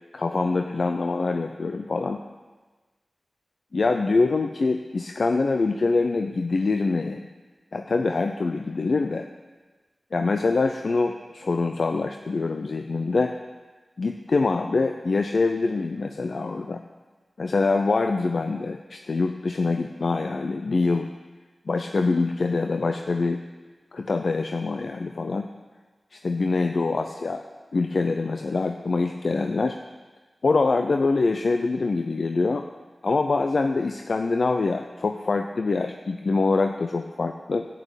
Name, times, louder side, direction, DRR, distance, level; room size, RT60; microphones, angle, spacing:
voice 1, 0.1-2.2 3.7-7.3 7.7-9.3 10.1-13.3 14.0-16.8 17.4-21.1 21.7-23.4 23.9-25.5 26.1-27.4 27.7-29.8 30.4-32.7 33.0-37.7, left 3 dB, 70° left, 6 dB, 0.6 m, -24 dB
11.0 x 8.5 x 9.1 m, 1.3 s
cardioid pair, 50°, 0 cm